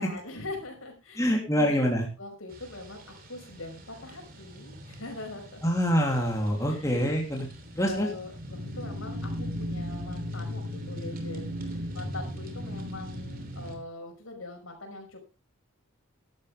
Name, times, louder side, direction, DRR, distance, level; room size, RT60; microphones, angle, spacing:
voice 1, 0.0-1.8 2.2-5.6 6.7-7.0 7.8-15.2, left 2 dB, 70° left, 4 dB, 5.5 m, -42 dB
voice 2, 1.2-2.1 5.6-7.5 7.7-8.1, equal, 15° left, 0 dB, 3.1 m, -25 dB
sound 1, 2.5-13.8, equal, 45° right, 3.1 m, -38 dB
15.5 x 12.0 x 3.5 m, 0.28 s
head